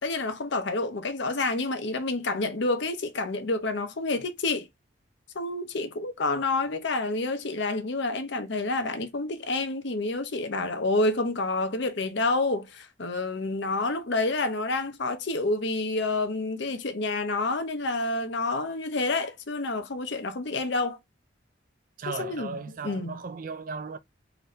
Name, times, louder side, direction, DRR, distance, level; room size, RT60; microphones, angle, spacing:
voice 1, 0.0-4.7 5.3-21.0 22.1-22.5 22.8-23.2, left 2 dB, 60° left, 0.7 m, -28 dB
voice 2, 22.0-24.0, right 4 dB, 45° right, 0.4 m, -36 dB
4.0 x 2.6 x 3.1 m
head